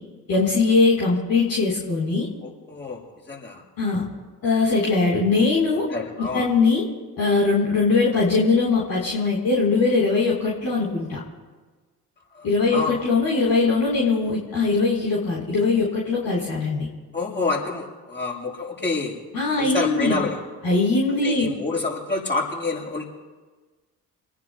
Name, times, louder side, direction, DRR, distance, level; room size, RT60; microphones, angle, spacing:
voice 1, 0.3-2.3 3.8-4.0 4.4-5.8 6.3-6.8 7.2-11.2 12.4-16.9 19.3-20.2 20.6-21.5, left 4 dB, 50° left, -5 dB, 4.0 m, -21 dB
voice 2, 2.4-3.6 5.9-6.5 12.3-13.0 17.1-19.2 19.6-20.4 21.2-23.0, left 3 dB, 20° left, -3 dB, 6.6 m, -28 dB
29.5 x 20.0 x 2.2 m, 1.3 s
figure-of-eight pair, 50°, 48 cm